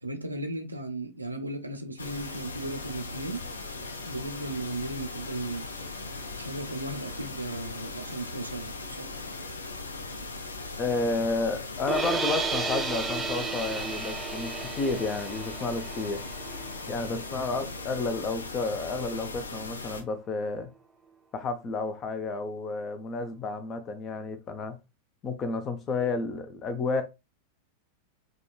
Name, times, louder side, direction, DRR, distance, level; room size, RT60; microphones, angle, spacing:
voice 1, 0.0-3.4 4.0-5.7 6.4-9.2, right 2 dB, 85° right, 0.5 m, -36 dB
sound 1, 2.0-20.0, left 3 dB, 75° left, 0.5 m, -39 dB
voice 2, 10.8-16.2 16.9-20.7 21.3-24.8 25.2-27.0, left 3 dB, 30° left, 0.6 m, -31 dB
sound 2, 11.9-18.0, right 4 dB, 15° right, 0.6 m, -33 dB
5.0 x 2.2 x 2.3 m
figure-of-eight pair, 90°, 0 cm